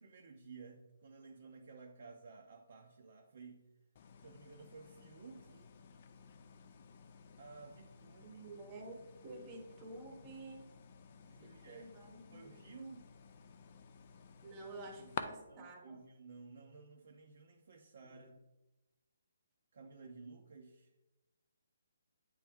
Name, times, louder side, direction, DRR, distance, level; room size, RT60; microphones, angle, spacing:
voice 1, 0.0-3.7 4.2-5.7 7.4-8.4 11.2-13.1 15.0-15.1 15.5-18.4 19.7-20.9, right 4 dB, 55° right, 2 dB, 0.5 m, -55 dB
sound 1, 3.9-15.2, left 7 dB, 35° left, 0.4 m, -52 dB
voice 2, 8.2-10.6 11.4-12.7 14.4-16.0, right 2 dB, 15° right, 2 dB, 0.9 m, -50 dB
9.1 x 3.1 x 3.5 m, 1.0 s
hypercardioid pair, 170°, 0 cm